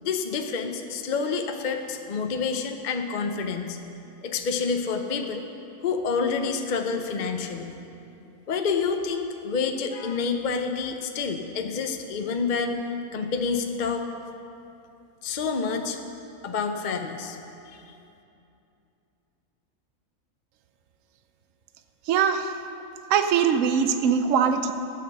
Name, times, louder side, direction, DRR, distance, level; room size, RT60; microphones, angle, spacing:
voice 1, 0.0-3.8 4.2-5.4 5.8-7.7 8.5-12.8 13.1-14.1 15.2-16.0 16.4-17.4 17.7-17.8, left 5 dB, 45° left, 5 dB, 0.6 m, -28 dB
voice 2, 22.1-22.5 23.1-24.7, right 7 dB, 70° right, 8 dB, 1.0 m, -21 dB
12.0 x 8.6 x 6.6 m, 2.8 s
omnidirectional pair, 1.4 m